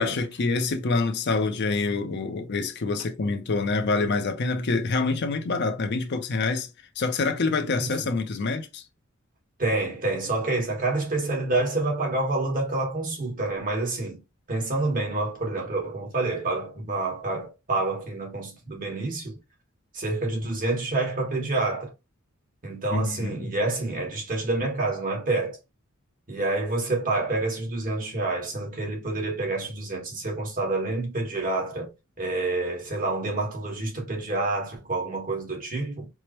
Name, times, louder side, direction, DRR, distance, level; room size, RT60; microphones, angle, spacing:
voice 1, 0.0-6.7 7.0-8.8 22.9-23.5, left 3 dB, 55° left, 0.6 m, -26 dB
voice 2, 9.6-14.2 14.5-19.4 19.9-21.9 22.6-25.6 26.3-31.9 32.2-36.1, right 2 dB, 40° right, 1.4 m, -28 dB
4.7 x 2.1 x 2.9 m
head